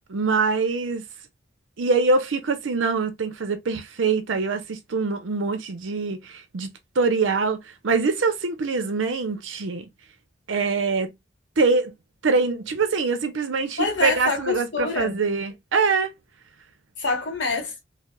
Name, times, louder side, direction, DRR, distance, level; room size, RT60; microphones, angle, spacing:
voice 1, 0.1-1.0 1.8-7.6 7.8-9.9 10.5-11.1 11.6-11.9 12.2-16.1, right 4 dB, 90° right, 0.6 m, -24 dB
voice 2, 13.8-15.2 17.0-17.8, left 4 dB, 80° left, 1.0 m, -26 dB
3.2 x 2.1 x 2.2 m
head